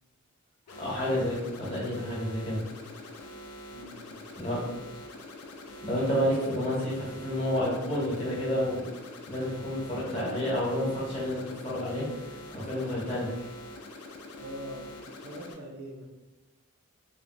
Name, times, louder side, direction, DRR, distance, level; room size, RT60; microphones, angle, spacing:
sound 1, 0.7-15.5, left 1 dB, 90° left, 0.4 m, -45 dB
voice 1, 0.8-2.6 4.4-4.6 5.8-8.8 9.3-12.1 12.5-13.3, equal, 25° left, -6 dB, 0.8 m, -30 dB
voice 2, 3.7-5.1 14.4-16.1, equal, 50° right, -1 dB, 0.4 m, -44 dB
2.9 x 2.1 x 2.5 m, 1.1 s
head